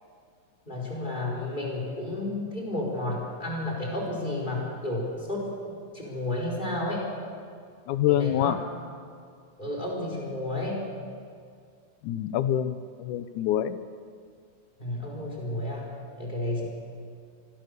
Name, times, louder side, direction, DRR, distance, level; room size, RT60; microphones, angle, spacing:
voice 1, 0.7-7.1 8.1-8.5 9.6-10.8 14.8-16.7, left 1 dB, 15° left, -3 dB, 4.7 m, -32 dB
voice 2, 7.9-8.6 12.0-13.8, left 11 dB, 75° left, 13 dB, 2.2 m, -26 dB
25.5 x 18.0 x 6.8 m, 2.2 s
omnidirectional pair, 3.7 m